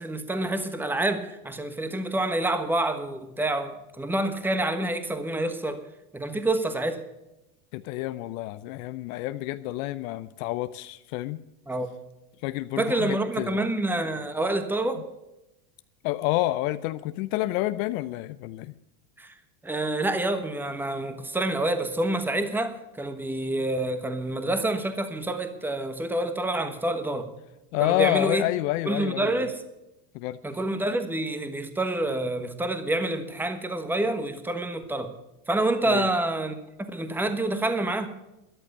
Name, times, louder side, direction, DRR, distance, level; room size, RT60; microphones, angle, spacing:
voice 1, 0.0-5.8 6.1-7.0 11.7-11.9 12.8-15.0 19.2-19.3 19.6-27.3 27.8-28.4 28.8-29.6 30.4-35.1 35.5-38.1, right 2 dB, 5° right, 9 dB, 1.3 m, -27 dB
voice 2, 7.7-11.4 12.4-13.6 16.0-18.7 27.7-29.5 30.1-30.4 35.8-36.1, left 16 dB, 65° left, 13 dB, 0.7 m, -29 dB
13.5 x 10.5 x 6.9 m, 0.95 s
supercardioid pair, 115°, 44 cm